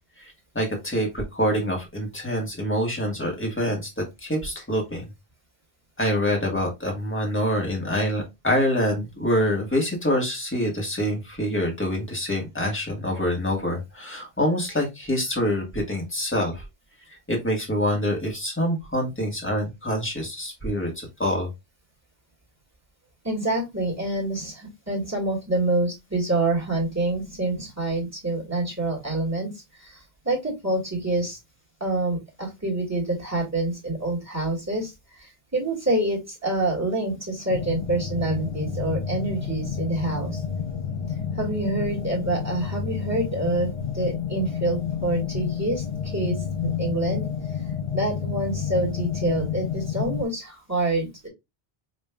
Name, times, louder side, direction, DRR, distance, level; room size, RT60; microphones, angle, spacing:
voice 1, 0.2-3.9 4.2-5.0 6.0-16.6 17.3-21.5, equal, 10° left, 0 dB, 1.4 m, -26 dB
voice 2, 23.2-29.5 29.8-31.4 31.8-34.9 35.2-40.4 41.4-43.7 43.9-46.4 46.6-47.3 47.9-51.3, right 2 dB, 15° right, -3 dB, 1.8 m, -27 dB
sound 1, 37.5-50.2, left 7 dB, 45° left, 0.6 m, -30 dB
5.3 x 2.9 x 2.2 m, 0.21 s
omnidirectional pair, 1.0 m